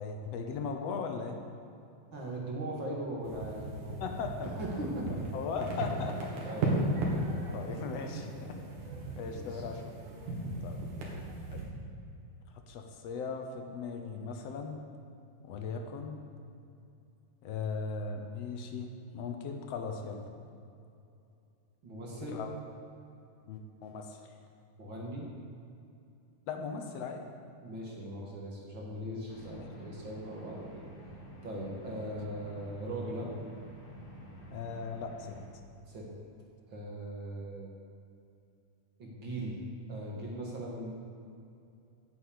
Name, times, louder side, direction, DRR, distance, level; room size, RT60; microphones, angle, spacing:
voice 1, 0.0-1.4 4.0-4.5 5.3-6.2 7.5-8.6 9.2-9.8 10.6-10.8 11.5-11.6 12.7-14.8 15.4-16.2 17.4-20.2 22.3-22.5 23.5-24.2 26.5-27.3 34.5-35.4, left 5 dB, 70° left, 4 dB, 1.6 m, -38 dB
voice 2, 2.1-4.0 4.4-5.3 6.4-6.7 9.3-9.6 21.8-22.4 24.8-25.3 27.6-30.7 31.4-33.3 35.9-36.1 36.7-37.7 39.0-39.6 39.9-40.9, right 1 dB, 45° right, -3 dB, 2.0 m, -39 dB
sound 1, 3.2-11.6, right 1 dB, 80° right, 3.5 m, -36 dB
sound 2, 29.3-35.5, right 1 dB, 50° left, 2.3 m, -49 dB
9.5 x 7.4 x 8.4 m, 2.6 s
omnidirectional pair, 3.8 m